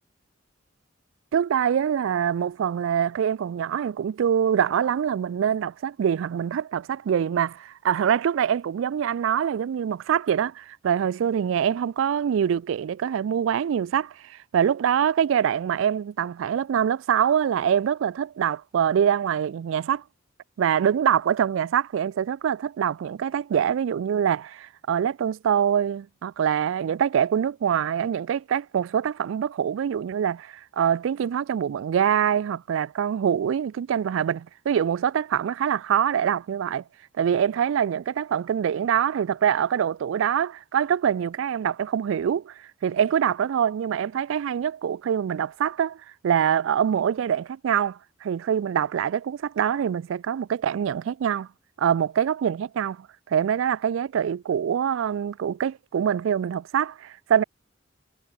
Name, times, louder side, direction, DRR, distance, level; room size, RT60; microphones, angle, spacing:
voice 1, 1.3-20.0 20.6-36.8 37.2-46.0 46.2-51.5 51.8-57.4, right 8 dB, 75° right, 0.3 m, -24 dB
head